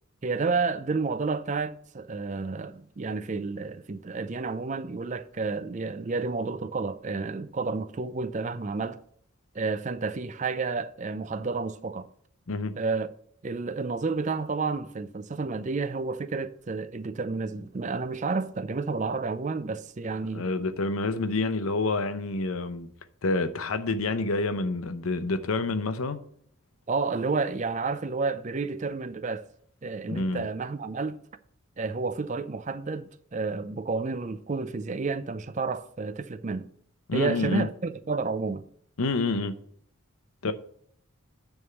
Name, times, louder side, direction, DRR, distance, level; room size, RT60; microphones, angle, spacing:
voice 1, 0.2-9.0 9.5-12.1 12.8-13.1 13.4-20.5 26.9-29.5 29.8-31.2 31.8-36.7 37.1-38.6 40.4-40.5, right 4 dB, 35° right, 0.4 m, -30 dB
voice 2, 20.3-22.9 23.2-26.2 30.1-30.5 37.1-37.7 39.0-39.5 40.4-40.5, left 3 dB, 80° left, 0.8 m, -28 dB
9.7 x 3.6 x 6.7 m
head